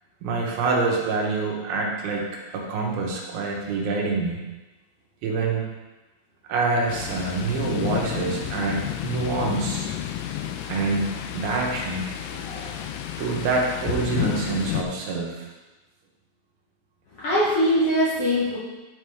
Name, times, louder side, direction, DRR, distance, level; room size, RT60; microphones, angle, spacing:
voice 1, 0.2-2.3 2.5-4.4 5.2-5.7 6.5-9.9 10.6-12.1 13.2-15.5, right 3 dB, 80° right, -1 dB, 3.0 m, -26 dB
Thunder, 6.9-14.8, left 11 dB, 80° left, 2.0 m, -31 dB
voice 2, 12.3-12.8 17.1-18.6, equal, 60° left, -9 dB, 1.7 m, -23 dB
10.0 x 4.7 x 3.5 m, 1.1 s
omnidirectional pair, 4.3 m